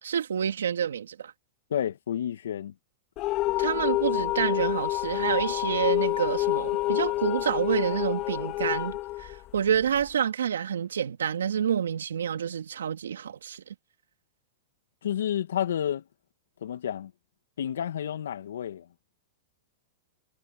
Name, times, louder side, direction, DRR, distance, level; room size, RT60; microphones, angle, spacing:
voice 1, 0.0-1.3 3.6-13.6, right 8 dB, 85° right, 2.8 m, -28 dB
voice 2, 1.7-2.7 15.0-16.0 16.6-17.1 17.6-18.9, left 10 dB, 80° left, 2.4 m, -30 dB
sound 1, 3.2-10.1, left 18 dB, 45° left, 3.8 m, -28 dB
hypercardioid pair, 110°, 0 cm